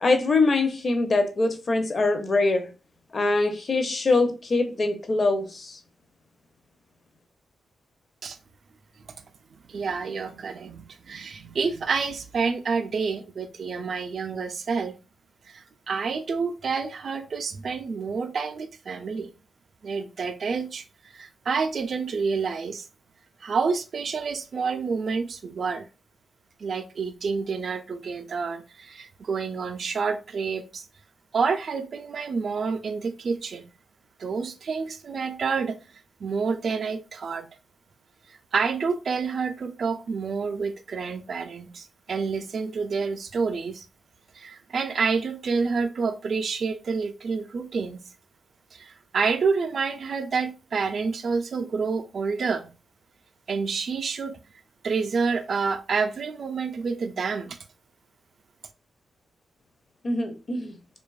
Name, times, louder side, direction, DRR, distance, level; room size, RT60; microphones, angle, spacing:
voice 1, 0.0-2.7 3.1-5.8 60.0-60.7, left 3 dB, 45° left, 0.5 m, -23 dB
voice 2, 9.7-14.9 15.5-19.3 19.8-22.9 23.4-25.9 26.6-30.9 31.3-33.7 34.2-35.8 36.2-37.5 38.3-43.8 44.3-48.0 48.7-52.7 53.5-54.4 54.8-57.6, right 5 dB, 60° right, 0.3 m, -28 dB
2.6 x 2.3 x 2.3 m
cardioid pair, 75°, 0 cm